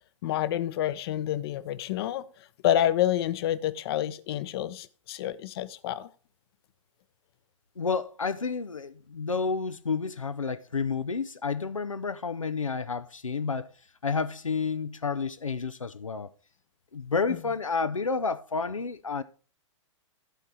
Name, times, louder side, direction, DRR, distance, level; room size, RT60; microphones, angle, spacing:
voice 1, 0.2-2.2 2.6-6.1, left 12 dB, 50° left, 0.7 m, -28 dB
voice 2, 7.8-13.7 14.0-16.3 16.9-19.2, left 5 dB, 90° left, 0.5 m, -30 dB
11.5 x 4.6 x 5.5 m
figure-of-eight pair, 105°, 16 cm